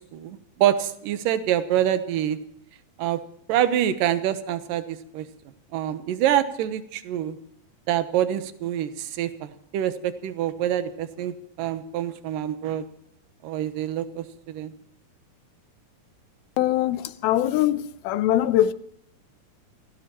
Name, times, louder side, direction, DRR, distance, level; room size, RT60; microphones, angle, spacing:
voice 1, 0.0-2.4 3.0-3.2 3.5-5.3 5.7-7.4 7.9-12.8 13.4-14.7, right 11 dB, 75° right, 2.4 m, -26 dB
voice 2, 16.6-18.7, left 12 dB, 85° left, 2.6 m, -22 dB
28.5 x 17.0 x 3.0 m
omnidirectional pair, 4.3 m